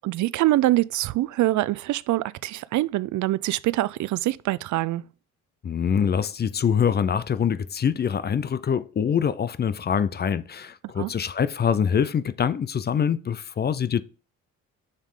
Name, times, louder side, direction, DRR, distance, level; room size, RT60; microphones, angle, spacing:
voice 1, 0.0-5.0 11.0-11.1, right 16 dB, 70° right, 0.5 m, -24 dB
voice 2, 5.6-14.0, left 7 dB, 35° left, 0.5 m, -24 dB
7.3 x 6.6 x 3.7 m
cardioid pair, 90°, 30 cm